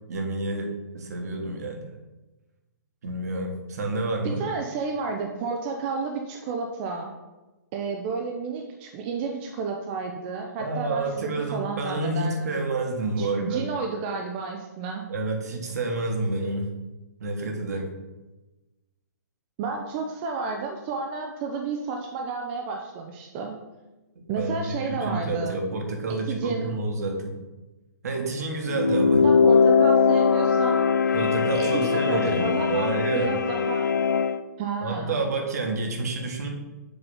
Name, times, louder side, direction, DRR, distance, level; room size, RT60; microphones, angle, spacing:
voice 1, 0.1-1.9 3.0-4.4 10.6-13.6 15.1-16.7 17.2-18.0 24.1-27.3 28.0-29.4 31.1-33.4 34.8-36.5, right 2 dB, 60° right, 2 dB, 1.4 m, -29 dB
voice 2, 4.2-7.1 7.7-12.6 13.2-15.1 19.6-23.6 24.3-25.6 26.1-26.7 29.2-30.8 31.1-31.2 31.5-33.9 34.6-35.3, right 4 dB, 35° right, 2 dB, 0.7 m, -31 dB
sound 1, 28.7-34.4, left 5 dB, 80° left, 0.4 m, -21 dB
7.2 x 3.1 x 5.5 m, 1.1 s
figure-of-eight pair, 125°, 10 cm